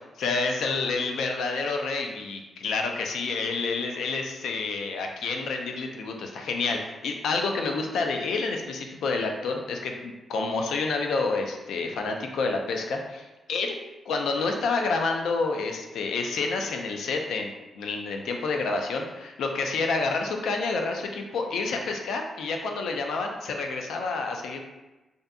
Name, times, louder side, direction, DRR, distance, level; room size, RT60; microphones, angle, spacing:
voice 1, 0.2-13.8 14.1-24.6, left 4 dB, 90° left, 3 dB, 0.3 m, -29 dB
2.5 x 2.4 x 2.3 m, 1.1 s
cardioid pair, 125°, 0 cm